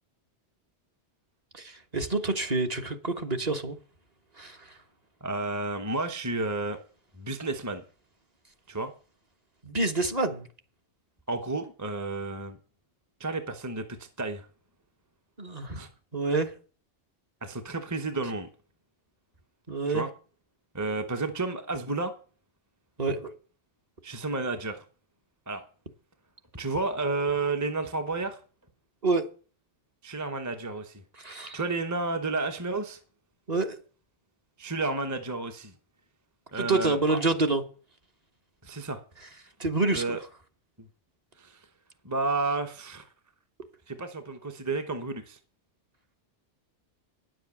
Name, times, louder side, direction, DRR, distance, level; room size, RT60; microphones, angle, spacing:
voice 1, 1.5-3.8 4.4-4.7 9.6-10.5 15.4-15.9 16.1-16.5 19.7-20.0 23.0-23.3 29.0-29.3 31.2-31.6 33.5-33.8 36.6-37.6 39.6-40.2, right 3 dB, 35° right, 1.3 m, -27 dB
voice 2, 5.2-6.8 7.2-7.8 8.7-8.9 11.3-12.6 13.2-14.5 15.8-15.9 17.4-18.5 19.9-20.1 20.7-22.1 24.0-24.8 25.5-25.6 26.5-28.4 30.0-31.0 31.3-33.0 34.6-35.7 36.5-37.2 38.6-39.0 39.9-40.2 41.4-41.6 42.0-43.1 43.9-45.4, right 3 dB, 15° right, 0.8 m, -31 dB
10.0 x 7.6 x 7.2 m
omnidirectional pair, 1.2 m